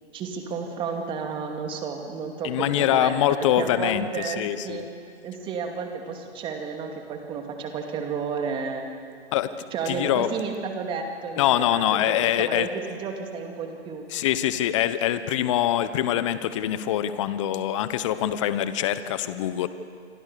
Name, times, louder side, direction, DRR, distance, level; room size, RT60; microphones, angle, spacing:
voice 1, 0.1-4.9 5.2-8.8 9.7-14.0, right 5 dB, 15° right, 4 dB, 2.4 m, -32 dB
voice 2, 2.4-4.8 9.3-9.5 9.9-10.3 11.4-12.7 14.1-19.7, left 12 dB, 30° left, 13 dB, 1.0 m, -24 dB
27.5 x 23.0 x 6.8 m, 2.2 s
hypercardioid pair, 145°, 34 cm